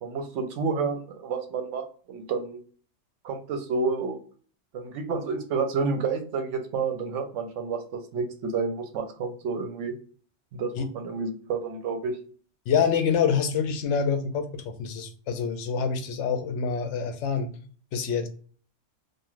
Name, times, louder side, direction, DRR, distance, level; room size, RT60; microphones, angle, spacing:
voice 1, 0.0-2.6 3.2-4.2 4.7-9.9 10.5-12.2, right 4 dB, 75° right, 6 dB, 1.0 m, -30 dB
voice 2, 12.7-17.5 17.9-18.3, left 6 dB, 70° left, 7 dB, 0.9 m, -26 dB
2.4 x 2.4 x 3.0 m, 0.43 s
omnidirectional pair, 1.3 m